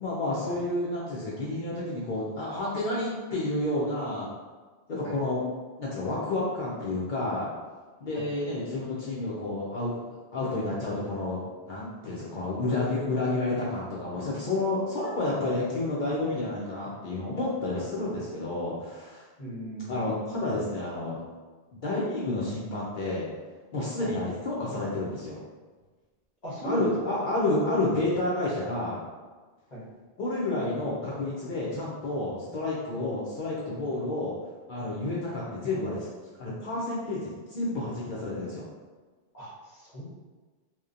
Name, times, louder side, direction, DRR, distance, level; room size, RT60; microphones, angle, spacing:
voice 1, 0.0-4.3 4.9-5.4 5.8-7.5 8.0-10.0 10.3-11.4 11.6-19.2 19.9-21.2 21.7-23.3 23.7-25.4 26.6-29.0 30.2-34.3 34.7-36.1 36.4-38.7, left 2 dB, 60° left, -6 dB, 0.6 m, -30 dB
voice 2, 19.4-20.0 24.0-24.1 26.4-27.2 29.7-29.8 39.3-40.0, right 1 dB, 40° left, -9 dB, 1.0 m, -37 dB
2.8 x 2.1 x 2.4 m, 1.3 s
omnidirectional pair, 1.1 m